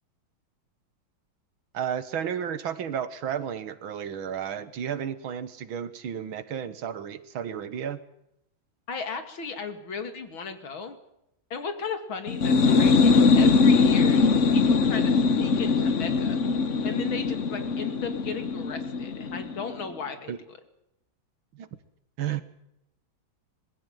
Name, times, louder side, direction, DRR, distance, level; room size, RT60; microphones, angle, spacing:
voice 1, 1.7-8.0 20.3-20.4 21.5-21.7 22.2-22.4, right 8 dB, 85° right, 13 dB, 2.1 m, -32 dB
voice 2, 8.9-11.0 11.5-14.2 14.5-16.4 16.8-20.6, left 5 dB, 85° left, 8 dB, 3.2 m, -36 dB
sound 1, 12.3-19.8, left 4 dB, 45° left, 1.2 m, -21 dB
21.5 x 15.5 x 9.0 m, 0.82 s
omnidirectional pair, 2.2 m